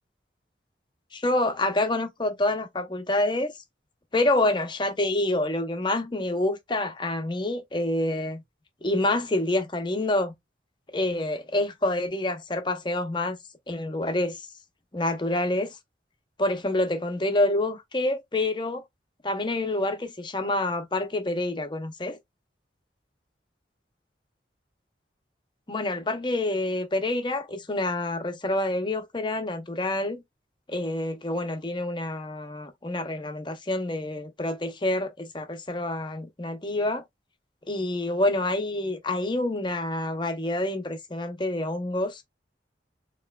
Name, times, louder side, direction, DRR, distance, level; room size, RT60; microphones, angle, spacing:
voice 1, 1.1-3.5 4.1-8.4 8.8-10.3 10.9-13.4 13.7-14.5 14.9-15.8 16.4-18.8 19.2-22.2 25.7-30.2 30.7-37.0 37.7-42.2, left 1 dB, 25° left, 0.7 m, -27 dB
4.6 x 3.0 x 2.3 m
head